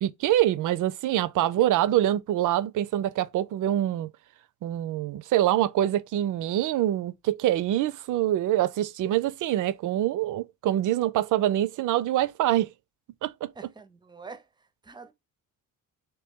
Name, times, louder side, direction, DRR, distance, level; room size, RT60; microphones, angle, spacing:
voice 1, 0.0-4.1 4.6-12.7 13.2-13.5, right 13 dB, 65° right, 0.5 m, -25 dB
voice 2, 13.6-14.5 14.8-15.1, right 4 dB, 15° right, 0.5 m, -45 dB
3.0 x 3.0 x 3.5 m
cardioid pair, 120°, 34 cm